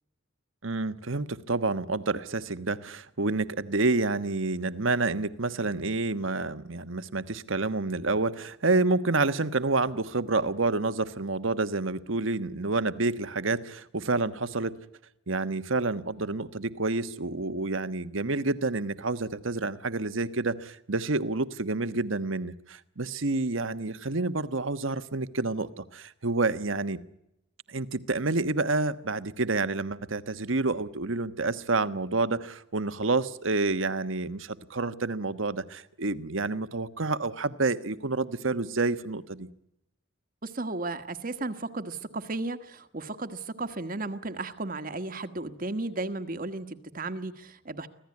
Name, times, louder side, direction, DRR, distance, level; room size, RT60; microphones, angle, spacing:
voice 1, 0.6-14.7 15.3-27.0 27.7-39.5, right 3 dB, 75° right, 12 dB, 1.3 m, -28 dB
voice 2, 40.4-47.9, right 2 dB, 45° right, 8 dB, 1.4 m, -34 dB
25.5 x 17.0 x 9.7 m, 0.82 s
head